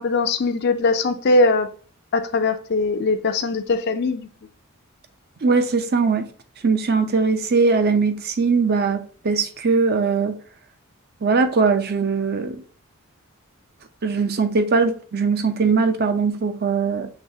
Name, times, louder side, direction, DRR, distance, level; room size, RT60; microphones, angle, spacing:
voice 1, 0.0-1.7 2.1-4.3, left 3 dB, 50° left, 0.4 m, -21 dB
voice 2, 5.4-6.2 6.6-10.4 11.2-12.6 14.0-17.1, right 4 dB, 45° right, 0.5 m, -20 dB
6.0 x 3.2 x 2.7 m
head